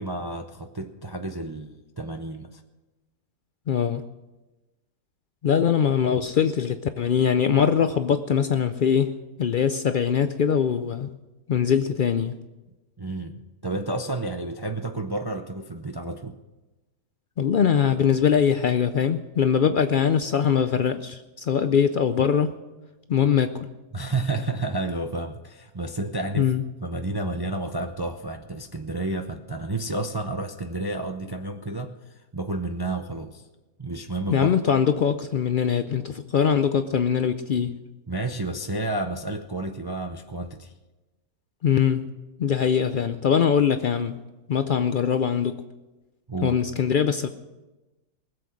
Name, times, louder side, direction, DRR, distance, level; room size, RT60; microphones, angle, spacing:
voice 1, 0.0-2.6 13.0-16.4 23.9-26.5 26.8-33.4 33.8-34.6 38.1-40.7 46.3-46.6, right 2 dB, 35° right, 0.3 m, -31 dB
voice 2, 3.7-4.0 5.4-11.1 11.5-12.4 17.4-22.6 23.1-23.7 26.4-26.6 34.3-37.8 41.6-42.1 42.4-44.2 44.5-45.6 46.4-47.3, left 7 dB, 85° left, 0.4 m, -22 dB
20.0 x 7.9 x 6.3 m
omnidirectional pair, 1.5 m